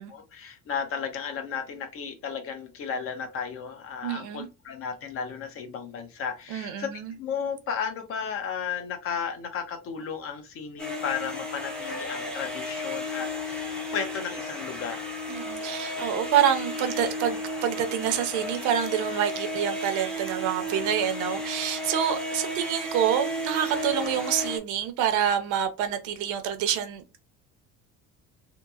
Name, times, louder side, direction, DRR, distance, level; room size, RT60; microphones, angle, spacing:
voice 1, 0.1-6.9 7.2-15.0, left 6 dB, 45° left, 0.7 m, -34 dB
voice 2, 4.0-4.5 6.5-7.1 15.3-27.2, right 9 dB, 70° right, 0.7 m, -27 dB
sound 1, 10.8-24.6, left 1 dB, 5° left, 0.6 m, -33 dB
2.9 x 2.7 x 2.4 m
cardioid pair, 160°, 31 cm